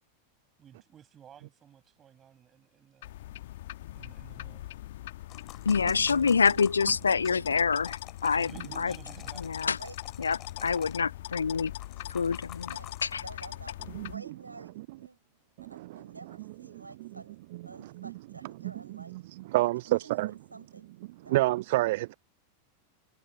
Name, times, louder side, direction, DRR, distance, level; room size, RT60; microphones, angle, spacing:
voice 1, 0.6-3.1 3.9-4.7 8.2-9.5, right 9 dB, 25° right, 6.9 m, -55 dB
sound 1, 3.0-14.2, left 15 dB, 55° left, 1.4 m, -41 dB
sound 2, 5.3-7.4 7.7-10.9 11.7-13.2, left 14 dB, 35° left, 3.7 m, -49 dB
voice 2, 5.7-8.5 8.8-8.9 9.4-9.8 10.2-11.7 12.1-12.7 13.0-13.2, left 5 dB, 75° left, 0.3 m, -26 dB
voice 3, 13.2-15.2 15.7-17.4 17.7-19.2 19.6-20.9 21.2-21.4, right 3 dB, 80° right, 5.1 m, -50 dB
voice 4, 15.6-17.1 17.5-18.1 18.6-20.3 21.2-22.1, right 18 dB, 50° right, 1.0 m, -30 dB
figure-of-eight pair, 90°, 0 cm